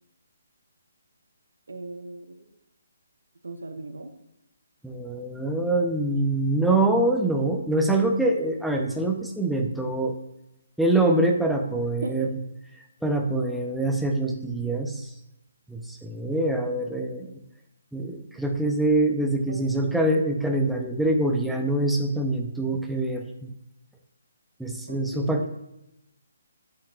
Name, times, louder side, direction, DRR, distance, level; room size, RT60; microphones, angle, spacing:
voice 1, 1.7-2.4 3.4-4.1 12.0-12.3 19.2-19.9 24.9-25.5, right 2 dB, 70° right, 7 dB, 0.9 m, -38 dB
voice 2, 4.8-10.1 10.8-12.3 13.0-15.1 15.7-17.3 17.9-23.5 24.6-25.5, right 2 dB, ahead, 2 dB, 0.7 m, -24 dB
8.7 x 7.4 x 2.5 m, 0.85 s
figure-of-eight pair, 140°, 0 cm